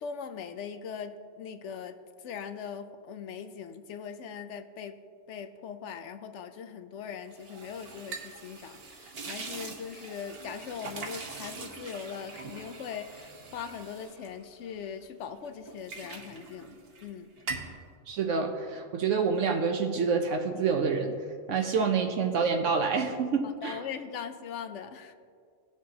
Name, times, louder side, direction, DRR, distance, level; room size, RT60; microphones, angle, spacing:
voice 1, 0.0-5.0 5.3-17.3 23.4-25.1, left 7 dB, 70° left, 9 dB, 0.9 m, -40 dB
sound 1, 7.3-15.1 15.4-17.1 17.4-17.8, right 4 dB, 50° right, 1.2 m, -42 dB
voice 2, 18.1-21.1 21.5-23.8, right 5 dB, 75° right, 4 dB, 1.0 m, -27 dB
17.5 x 6.3 x 2.8 m, 2.1 s
omnidirectional pair, 1.4 m